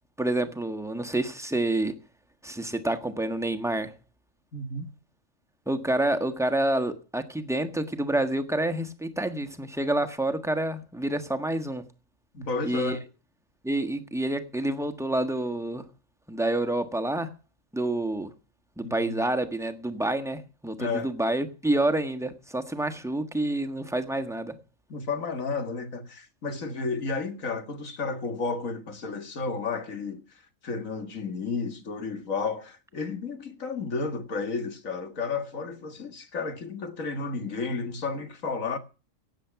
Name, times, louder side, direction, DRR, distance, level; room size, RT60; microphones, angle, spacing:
voice 1, 0.2-2.0 2.4-3.9 5.7-11.8 12.6-13.0 13.6-15.8 16.3-17.3 17.7-18.3 18.8-24.5, right 1 dB, ahead, 1.3 m, -28 dB
voice 2, 4.5-4.9 12.3-13.0 18.8-19.2 20.8-21.1 24.9-30.2 30.6-38.8, left 4 dB, 80° left, 2.2 m, -32 dB
16.0 x 9.7 x 5.9 m
omnidirectional pair, 1.4 m